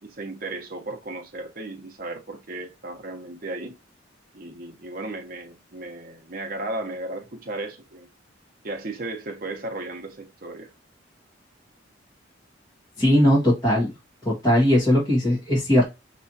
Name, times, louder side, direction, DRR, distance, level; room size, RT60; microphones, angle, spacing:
voice 1, 0.0-3.7 4.3-8.1 8.6-10.7, right 2 dB, 45° right, 0.8 m, -35 dB
voice 2, 13.0-13.9 14.2-15.8, equal, 20° left, 1.5 m, -19 dB
5.5 x 3.0 x 2.7 m
head